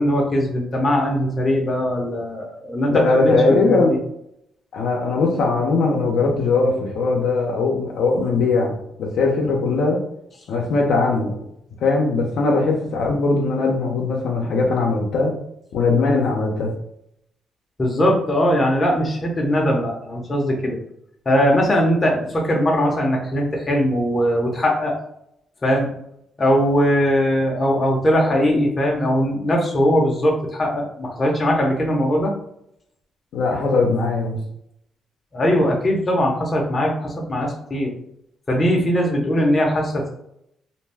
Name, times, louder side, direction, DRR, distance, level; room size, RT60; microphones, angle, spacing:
voice 1, 0.0-4.0 17.8-20.8 21.3-24.9 25.6-25.9 26.4-32.3 35.3-37.9 38.5-40.1, equal, 30° left, -1 dB, 0.7 m, -20 dB
voice 2, 2.9-3.9 4.7-10.0 10.5-11.3 11.8-15.3 15.7-16.7 33.3-34.4, left 3 dB, 75° left, -1 dB, 0.6 m, -20 dB
2.6 x 2.2 x 3.3 m, 0.74 s
cardioid pair, 90°, 0 cm